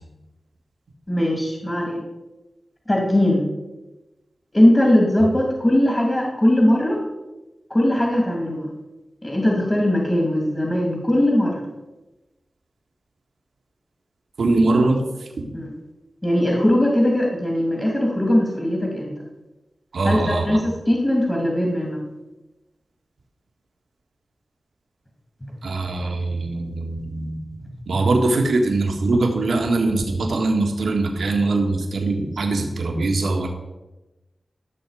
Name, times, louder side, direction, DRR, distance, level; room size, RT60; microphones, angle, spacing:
voice 1, 1.1-2.0 2.9-3.5 4.5-7.0 7.7-8.7 9.2-11.7 15.5-15.7 16.2-19.1 20.0-22.1, left 1 dB, 25° left, 0 dB, 2.6 m, -20 dB
voice 2, 14.4-15.0 15.4-15.5 19.9-20.6 25.6-27.4 27.9-33.5, right 2 dB, 85° right, 2 dB, 1.8 m, -22 dB
14.5 x 6.5 x 5.0 m, 1.1 s
cardioid pair, 45°, 0 cm